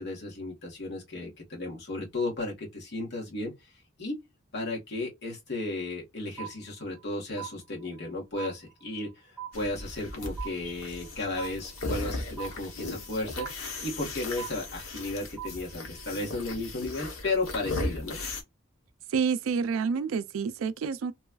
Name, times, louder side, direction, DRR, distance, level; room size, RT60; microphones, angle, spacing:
voice 1, 0.0-3.5 4.0-4.2 4.5-18.2, left 2 dB, 55° left, 1.4 m, -34 dB
sound 1, 6.4-7.1 7.4-8.1 8.4-9.1 9.4-10.1 10.4-11.1 11.4-12.1 12.4-13.1 13.4-14.1 14.4-15.1 15.4-16.1, right 11 dB, 10° right, 0.6 m, -42 dB
sound 2, 9.5-18.4, left 2 dB, 90° left, 0.9 m, -37 dB
voice 2, 19.1-21.1, right 6 dB, 80° right, 0.3 m, -28 dB
3.0 x 2.3 x 2.2 m
head